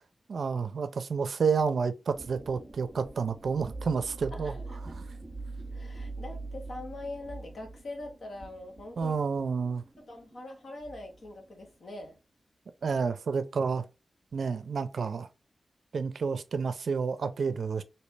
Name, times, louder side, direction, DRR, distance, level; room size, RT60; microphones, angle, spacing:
voice 1, 0.3-4.5 4.8-5.0 9.0-9.8 12.8-13.8 14.3-15.3 15.9-17.8, right 5 dB, 80° right, 0.4 m, -30 dB
sound 1, 2.1-12.1, right 3 dB, 20° right, 0.7 m, -44 dB
voice 2, 4.3-5.0 5.7-9.2 10.1-12.2, left 2 dB, 70° left, 1.1 m, -43 dB
3.2 x 2.7 x 3.2 m
wide cardioid pair, 70°, 0 cm